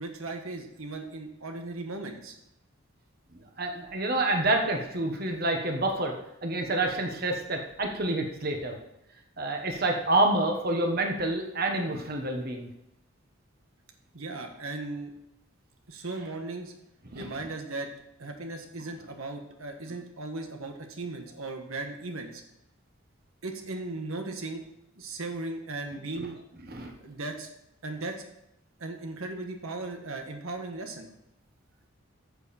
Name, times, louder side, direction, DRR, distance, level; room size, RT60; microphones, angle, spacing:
voice 1, 0.0-2.3 14.1-15.1 15.9-16.7 17.1-17.9 18.2-22.4 23.4-24.6 24.9-26.4 27.0-27.5 27.8-28.2 28.8-31.1, right 2 dB, 90° right, 4 dB, 1.6 m, -37 dB
voice 2, 3.6-6.1 6.4-8.8 9.4-12.7 17.1-17.3 26.7-26.9, right 2 dB, 45° right, 3 dB, 1.4 m, -28 dB
14.0 x 7.3 x 4.4 m, 0.82 s
head